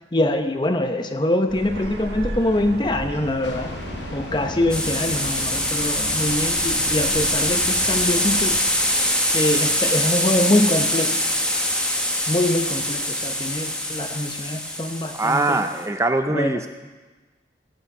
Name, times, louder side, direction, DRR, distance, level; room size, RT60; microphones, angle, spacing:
voice 1, 0.1-3.7 4.1-8.6 9.3-11.2 12.3-15.6 16.3-16.6, left 1 dB, 25° left, 7 dB, 0.8 m, -24 dB
sound 1, 1.5-8.6, right 1 dB, 75° right, 1.4 m, -35 dB
sound 2, 3.4-10.3, left 2 dB, 80° left, 1.0 m, -39 dB
sound 3, 4.7-15.8, left 1 dB, 5° left, 1.1 m, -23 dB
voice 2, 15.1-16.7, right 2 dB, 15° right, 7 dB, 0.4 m, -22 dB
17.0 x 7.1 x 6.0 m, 1.3 s
head